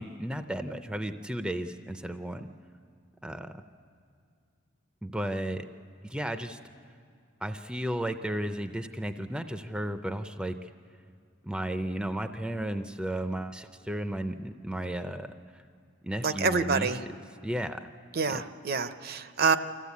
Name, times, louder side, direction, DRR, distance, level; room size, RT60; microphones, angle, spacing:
voice 1, 0.0-2.5 3.2-3.6 5.0-5.6 6.0-6.6 7.4-10.7 11.4-15.6 16.0-16.9 17.4-17.9 18.3-18.4, right 1 dB, 5° right, 8 dB, 0.5 m, -34 dB
voice 2, 16.2-17.0 18.1-19.6, right 4 dB, 50° right, 11 dB, 0.6 m, -27 dB
25.0 x 15.0 x 8.3 m, 2.3 s
head